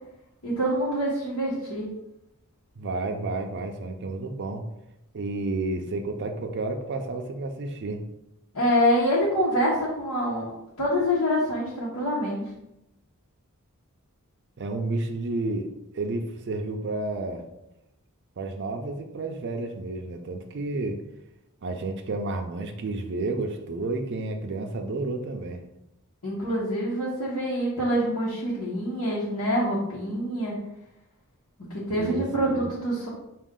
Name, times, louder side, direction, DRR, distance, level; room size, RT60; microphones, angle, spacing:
voice 1, 0.4-1.9 8.5-10.5 10.8-12.5 26.2-30.5 31.7-33.1, equal, 85° left, -8 dB, 1.1 m, -26 dB
voice 2, 2.8-4.7 5.1-8.0 14.6-15.7 15.9-17.4 18.4-21.0 21.6-25.6 31.9-32.7, right 2 dB, 55° right, 3 dB, 0.5 m, -31 dB
6.0 x 2.4 x 3.7 m, 0.87 s
head